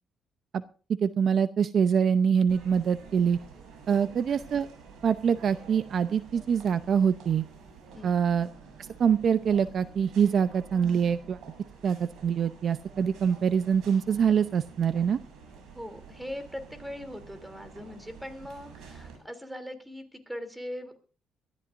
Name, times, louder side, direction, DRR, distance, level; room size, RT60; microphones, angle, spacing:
voice 1, 1.0-3.4 3.9-4.7 5.0-7.4 8.0-8.5 9.0-11.4 11.8-15.2, right 7 dB, 55° right, 12 dB, 0.7 m, -25 dB
sound 1, 2.5-19.2, right 5 dB, 85° right, 7.6 m, -49 dB
voice 2, 15.7-21.0, left 1 dB, 5° right, 8 dB, 3.1 m, -40 dB
23.0 x 14.0 x 2.6 m, 0.38 s
cardioid pair, 90°, 0 cm